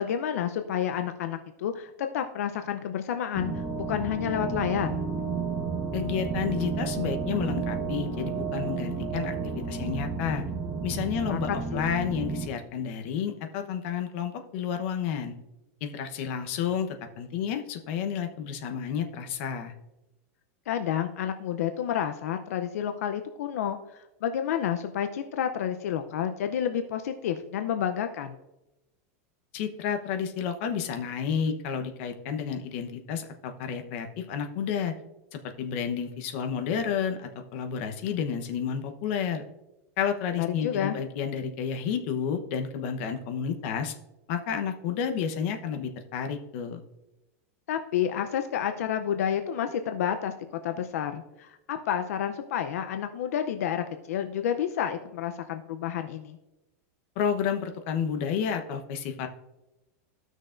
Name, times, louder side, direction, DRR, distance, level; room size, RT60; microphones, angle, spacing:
voice 1, 0.0-5.0 11.3-11.8 20.7-28.4 40.4-41.0 47.7-56.4, left 9 dB, 80° left, 7 dB, 0.6 m, -30 dB
sound 1, 3.3-12.5, right 5 dB, 25° right, 1.2 m, -32 dB
voice 2, 5.9-10.4 10.8-15.3 15.8-19.7 29.5-34.9 35.3-39.4 40.0-43.9 44.3-46.8 57.2-59.3, left 7 dB, 55° left, 6 dB, 0.9 m, -31 dB
15.0 x 6.3 x 2.5 m, 0.98 s
supercardioid pair, 160°, 8 cm